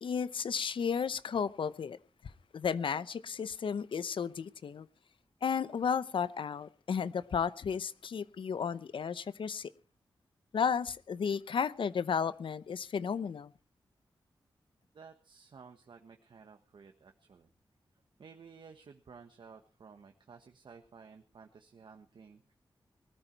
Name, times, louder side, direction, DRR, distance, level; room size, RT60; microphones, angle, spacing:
voice 1, 0.0-2.0 2.5-4.9 5.4-9.7 10.5-13.5, left 6 dB, 85° left, 0.8 m, -33 dB
voice 2, 14.9-17.5 18.2-22.5, right 5 dB, 70° right, 1.4 m, -54 dB
20.0 x 13.5 x 4.5 m
wide cardioid pair, 140°, 9 cm